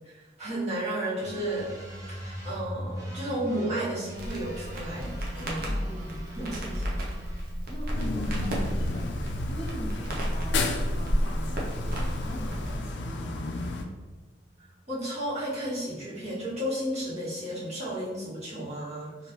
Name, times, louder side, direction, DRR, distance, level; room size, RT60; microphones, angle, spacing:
voice 1, 0.0-1.7 2.1-6.0 6.3-7.2 14.9-19.3, right 1 dB, 40° right, -10 dB, 1.3 m, -33 dB
sound 1, 1.2-18.7, right 1 dB, 20° right, 0.6 m, -44 dB
Crackle, 4.1-12.8, equal, 55° right, 0.7 m, -32 dB
voice 2, 5.3-6.7 7.7-9.2 9.5-13.6, equal, 30° left, -3 dB, 0.5 m, -42 dB
sound 2, 7.9-13.8, left 2 dB, 85° left, 0.4 m, -33 dB
3.1 x 2.7 x 2.9 m, 1.2 s
head